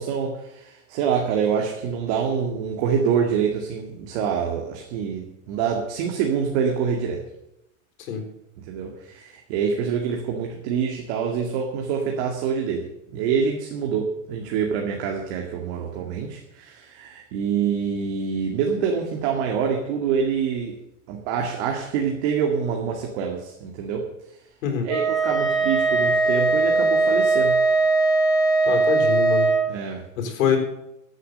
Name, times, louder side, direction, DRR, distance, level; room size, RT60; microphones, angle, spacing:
voice 1, 0.0-7.2 8.7-20.8 21.1-24.1 24.8-27.6 29.7-30.0, right 6 dB, 55° right, 1 dB, 2.2 m, -26 dB
Wind instrument woodwind instrument, 24.9-29.7, right 3 dB, 10° left, 3.7 m, -20 dB
voice 2, 28.7-29.5 30.2-30.6, left 8 dB, 75° left, 4 dB, 4.1 m, -24 dB
15.0 x 8.1 x 6.6 m, 0.85 s
supercardioid pair, 140°, 40 cm